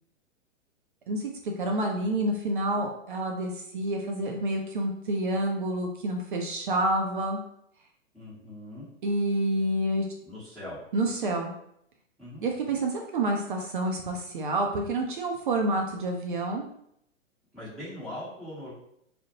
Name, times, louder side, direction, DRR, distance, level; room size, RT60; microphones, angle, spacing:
voice 1, 1.6-7.4 9.0-10.1 10.9-11.5 12.4-16.7, right 1 dB, 45° right, 2 dB, 0.4 m, -28 dB
voice 2, 8.1-8.9 10.2-10.8 12.2-12.4 17.5-18.7, left 1 dB, ahead, -13 dB, 0.9 m, -40 dB
2.4 x 2.1 x 2.8 m, 0.74 s
figure-of-eight pair, 115°, 39 cm